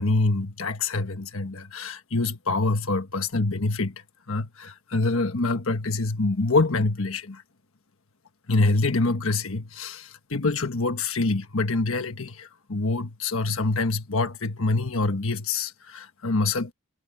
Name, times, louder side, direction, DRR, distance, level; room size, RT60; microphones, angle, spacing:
voice 1, 0.0-3.9 4.3-7.4 8.5-16.7, left 3 dB, 70° left, 1.4 m, -25 dB
head